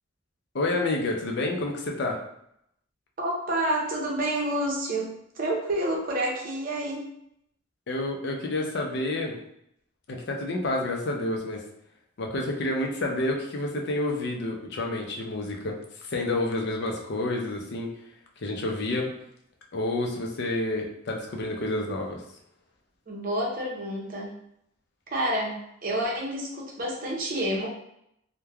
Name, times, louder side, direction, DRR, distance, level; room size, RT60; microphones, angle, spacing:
voice 1, 0.5-2.2 7.9-9.4 10.1-11.6 12.2-15.8 16.0-17.9 18.4-19.1 19.7-22.2, left 2 dB, 55° left, 1 dB, 0.5 m, -29 dB
voice 2, 3.2-7.1 23.1-24.3 25.1-27.7, right 1 dB, 45° right, -2 dB, 0.6 m, -29 dB
3.1 x 2.1 x 2.3 m, 0.75 s
head